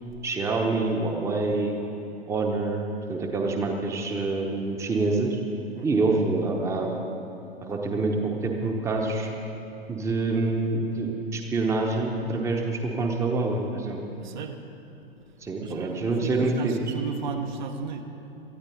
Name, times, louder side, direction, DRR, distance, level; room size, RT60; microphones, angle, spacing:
voice 1, 0.2-1.8 2.3-2.8 3.1-5.4 5.8-7.1 7.6-9.3 9.9-14.0 15.4-16.7, right 3 dB, 10° right, 2 dB, 1.0 m, -26 dB
voice 2, 5.7-6.1 13.9-14.6 15.5-18.0, right 6 dB, 50° right, 5 dB, 1.1 m, -35 dB
18.5 x 13.5 x 4.1 m, 2.9 s
figure-of-eight pair, 105°, 31 cm